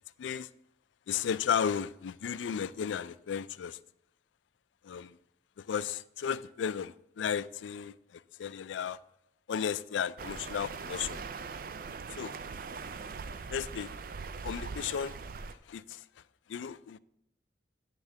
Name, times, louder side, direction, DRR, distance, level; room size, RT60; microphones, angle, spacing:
voice 1, 0.2-0.5 1.1-3.8 4.8-5.2 5.6-9.0 9.5-11.2 12.1-12.3 13.5-13.9 14.4-15.2 15.6-16.0 16.5-17.0, left 7 dB, 90° left, 0.3 m, -34 dB
sound 1, 10.2-15.5, right 4 dB, 50° right, 0.4 m, -41 dB
9.9 x 3.7 x 7.1 m
head